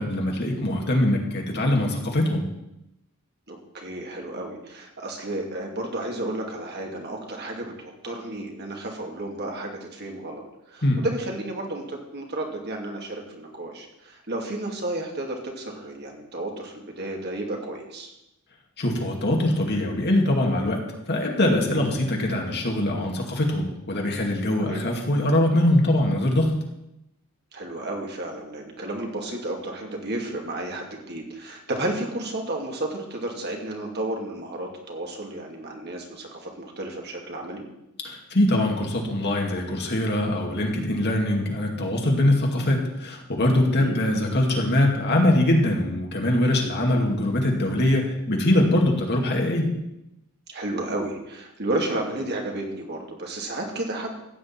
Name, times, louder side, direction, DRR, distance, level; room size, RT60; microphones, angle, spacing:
voice 1, 0.0-2.4 10.8-11.0 18.8-20.8 21.1-26.5 38.0-49.7, left 1 dB, 50° left, 1 dB, 2.4 m, -22 dB
voice 2, 3.5-18.1 24.6-24.8 27.5-37.6 43.8-44.0 50.5-54.2, right 1 dB, 50° right, 1 dB, 2.5 m, -32 dB
15.0 x 5.2 x 8.9 m, 0.87 s
head